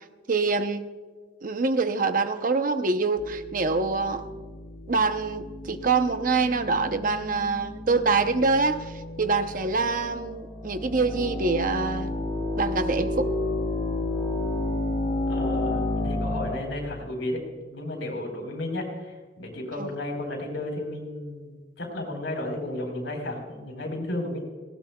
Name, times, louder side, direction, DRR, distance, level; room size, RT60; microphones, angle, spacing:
voice 1, 0.3-0.9 1.4-4.2 4.9-8.9 9.2-12.1 12.6-13.3 19.8-19.9, right 4 dB, 45° right, 9 dB, 0.7 m, -25 dB
sound 1, 3.2-16.6, left 2 dB, 25° left, 2.1 m, -31 dB
voice 2, 15.3-24.4, left 1 dB, 75° left, 1 dB, 4.0 m, -33 dB
19.0 x 16.5 x 2.3 m, 1.4 s
head